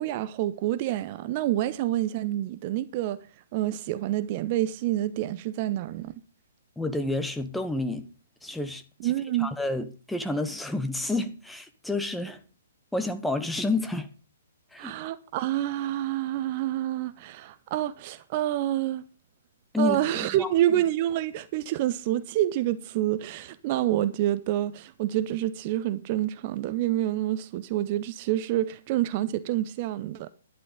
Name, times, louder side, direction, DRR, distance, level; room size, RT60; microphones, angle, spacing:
voice 1, 0.0-3.2 3.5-6.1 9.0-9.5 14.8-19.0 19.8-30.3, right 13 dB, 35° right, 0.6 m, -27 dB
voice 2, 6.8-8.0 8.4-9.1 9.4-12.4 12.9-14.1 14.7-14.9 19.7-20.5, left 2 dB, 5° left, 1.1 m, -30 dB
11.5 x 10.5 x 5.2 m
figure-of-eight pair, 125°, 0 cm